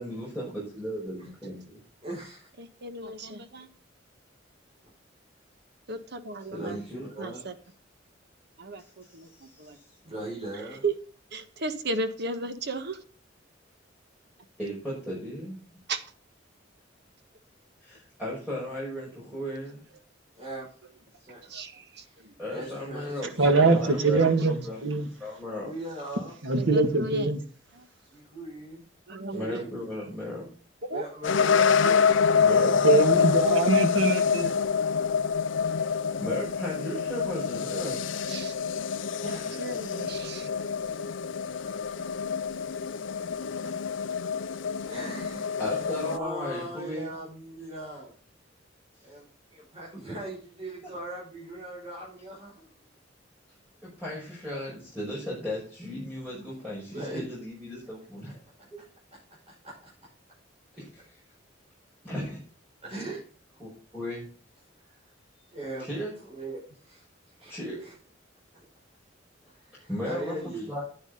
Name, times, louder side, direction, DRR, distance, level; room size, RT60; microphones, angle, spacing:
voice 1, 0.0-1.8 6.5-7.1 9.0-9.8 14.6-15.6 17.8-19.8 22.4-23.3 23.8-24.8 25.2-25.7 29.3-30.5 32.4-33.3 36.2-38.0 39.3-39.6 42.9-43.7 44.0-44.1 45.6-47.2 53.8-58.3 58.7-58.8 60.8-61.2 62.0-62.4 63.6-64.3 65.8-66.1 67.5-67.8 69.9-70.8, left 1 dB, 5° right, 5.6 m, -36 dB
voice 2, 2.0-2.5 6.5-7.4 10.0-10.9 20.4-20.7 21.2-21.6 21.9-24.4 25.6-26.4 28.1-28.9 29.3-29.7 30.9-32.1 39.2-39.5 44.9-48.1 49.0-49.2 49.5-52.8 56.9-57.2 58.3-58.4 59.6-59.9 62.8-63.2 64.9-65.0 65.5-65.9 66.2-67.9 69.5-70.7, right 1 dB, 35° right, 6.3 m, -39 dB
voice 3, 2.6-3.7 5.9-6.8 7.2-7.5 8.6-9.8 10.5-10.9 11.3-13.0 15.9-16.0 21.5-22.3 24.4-24.5 26.6-27.3 27.7-27.9 29.1-29.7 30.9-31.0 31.8-32.0 32.3-32.9 38.3-38.5 39.6-40.5 40.9-41.0, right 2 dB, 60° right, 1.5 m, -35 dB
voice 4, 23.4-24.6 24.8-25.1 26.4-27.4 32.8-34.5, right 3 dB, 85° right, 2.1 m, -23 dB
sound 1, 31.2-46.2, left 6 dB, 80° left, 0.6 m, -26 dB
10.5 x 9.7 x 3.9 m
head